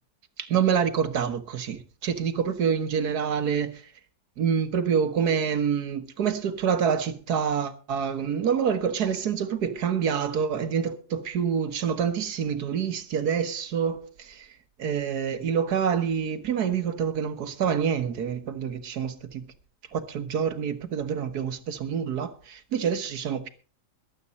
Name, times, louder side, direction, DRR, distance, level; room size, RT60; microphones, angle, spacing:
voice 1, 0.4-3.8 4.4-14.5 14.8-19.4 19.9-23.5, right 7 dB, 70° right, 1.8 m, -27 dB
22.0 x 8.5 x 4.1 m
omnidirectional pair, 1.8 m